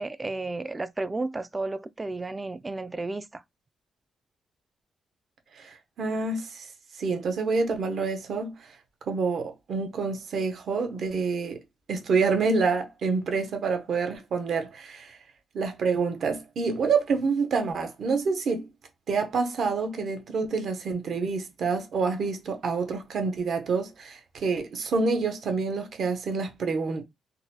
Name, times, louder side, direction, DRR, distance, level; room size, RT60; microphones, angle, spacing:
voice 1, 0.0-3.4, right 2 dB, 25° right, 0.3 m, -32 dB
voice 2, 5.6-6.7 7.0-8.5 9.1-11.6 11.9-15.2 15.5-18.7 19.1-27.0, right 4 dB, 65° right, 0.8 m, -27 dB
3.9 x 2.3 x 2.8 m
cardioid pair, 85°, 0 cm